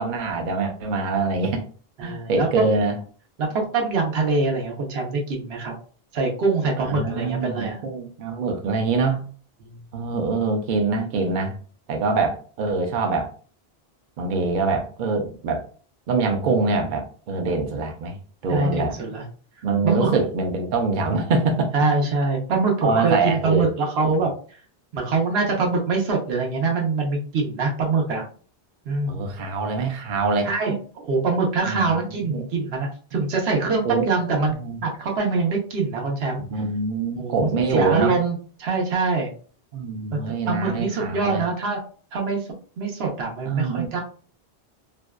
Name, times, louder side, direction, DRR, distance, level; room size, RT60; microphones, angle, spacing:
voice 1, 0.0-1.6 2.0-3.0 6.8-9.3 9.9-11.6 11.9-13.3 14.2-15.6 16.1-18.2 18.4-19.0 19.6-21.7 22.8-23.7 24.1-24.2 29.1-30.5 31.7-31.9 32.3-32.4 33.8-34.1 34.5-34.8 36.5-38.1 39.7-41.4 43.4-44.0, right 3 dB, 60° right, 3 dB, 0.6 m, -24 dB
voice 2, 2.0-2.7 3.4-5.7 6.1-7.8 9.6-9.8 18.5-19.2 19.8-20.2 21.7-24.6 24.9-28.2 28.8-29.3 30.4-34.5 34.8-36.4 37.2-39.3 40.1-41.8 42.1-42.5 42.8-44.0, right 3 dB, 80° right, 1 dB, 0.9 m, -24 dB
2.6 x 2.1 x 2.2 m, 0.41 s
omnidirectional pair, 1.0 m